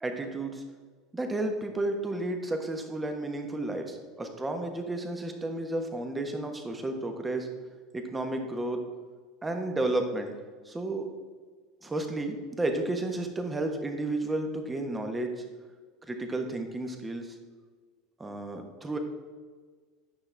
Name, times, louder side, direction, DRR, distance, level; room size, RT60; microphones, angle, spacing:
voice 1, 0.0-0.6 1.1-7.5 8.1-8.8 9.4-10.3 10.7-11.1 11.8-15.3 16.1-17.3 18.2-19.0, right 2 dB, 15° right, 4 dB, 1.2 m, -32 dB
9.3 x 5.9 x 3.4 m, 1.5 s
hypercardioid pair, 90°, 0 cm